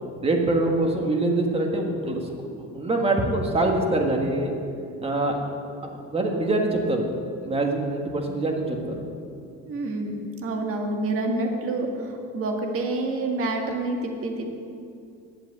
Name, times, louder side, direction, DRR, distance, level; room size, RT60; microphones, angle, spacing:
voice 1, 0.2-4.5 5.0-5.4 5.9-7.0 7.4-9.0, right 2 dB, 20° right, 2 dB, 1.5 m, -24 dB
voice 2, 9.6-14.6, right 2 dB, 45° right, 2 dB, 1.8 m, -28 dB
10.5 x 7.9 x 8.4 m, 2.5 s
cardioid pair, 150°, 31 cm